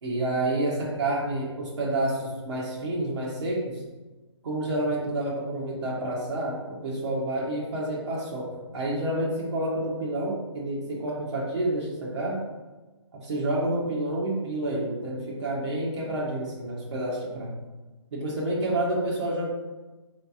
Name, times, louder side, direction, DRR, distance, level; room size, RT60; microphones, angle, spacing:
voice 1, 0.0-3.8 4.4-12.4 13.1-17.5 18.1-19.5, right 1 dB, 70° right, -6 dB, 1.4 m, -29 dB
4.4 x 3.3 x 2.8 m, 1.2 s
hypercardioid pair, 145°, 15 cm